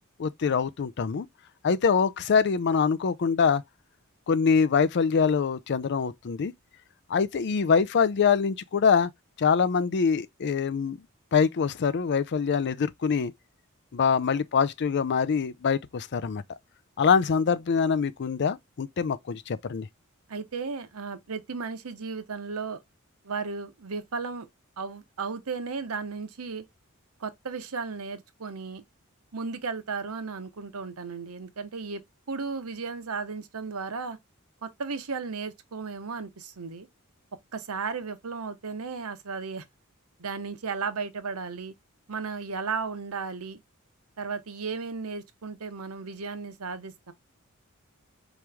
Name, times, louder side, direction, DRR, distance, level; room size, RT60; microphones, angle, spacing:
voice 1, 0.2-1.3 1.6-3.6 4.3-6.5 7.1-9.1 9.4-11.0 11.3-13.3 13.9-16.4 17.0-19.9, left 6 dB, 55° left, 0.4 m, -24 dB
voice 2, 20.3-22.8 23.2-24.5 24.8-26.6 27.2-28.8 29.3-32.0 32.3-34.2 34.6-36.9 37.5-39.6 40.2-41.7 42.1-43.6 44.2-47.1, right 4 dB, 85° right, 0.8 m, -35 dB
4.9 x 3.0 x 3.4 m
head